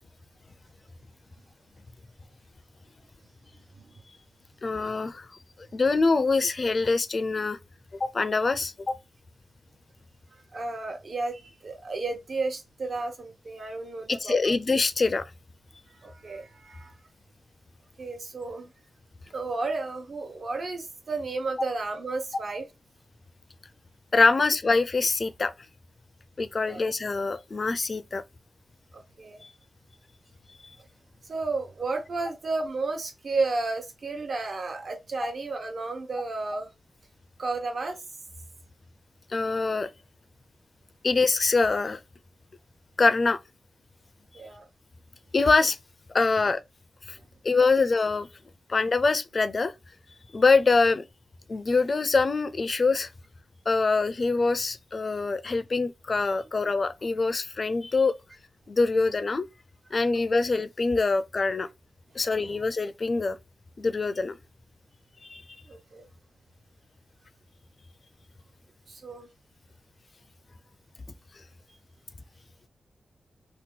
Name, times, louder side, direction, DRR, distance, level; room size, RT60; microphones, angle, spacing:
voice 1, 4.6-5.3 5.7-7.6 8.0-9.0 14.1-15.3 24.1-25.5 26.4-28.2 39.3-39.9 41.0-42.0 43.0-43.4 45.3-45.8 46.1-46.6 47.1-47.2 47.4-48.3 48.7-49.7 50.3-51.0 51.5-53.1 53.7-58.1 58.7-59.4 59.9-61.7 62.1-63.4 63.8-64.4 65.3-65.4, left 3 dB, 50° left, 0.4 m, -24 dB
voice 2, 10.5-14.5 15.9-17.0 18.0-18.7 19.3-22.7 26.6-26.8 28.9-29.4 31.2-36.7 37.4-38.0 44.3-44.6 60.1-60.2 62.5-62.6 65.7-66.1 68.9-69.3, right 3 dB, 60° right, 1.0 m, -32 dB
2.9 x 2.1 x 3.7 m
cardioid pair, 60°, 0 cm